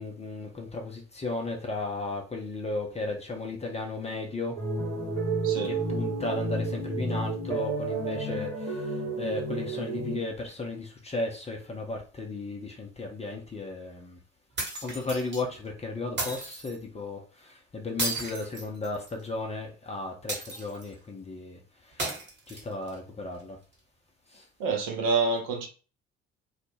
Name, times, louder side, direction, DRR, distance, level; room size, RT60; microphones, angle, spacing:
voice 1, 0.0-4.6 5.6-14.2 14.8-23.6 24.3-24.5, left 2 dB, 15° left, 0.6 m, -35 dB
sound 1, 4.6-10.2, right 2 dB, 80° right, 1.1 m, -31 dB
sound 2, 14.6-15.4 16.2-16.8 18.0-19.2 20.3-20.9 22.0-22.9, right 2 dB, 30° right, 1.2 m, -34 dB
voice 2, 24.6-25.7, right 4 dB, 55° right, 0.8 m, -27 dB
2.3 x 2.0 x 3.2 m
figure-of-eight pair, 50°, 38 cm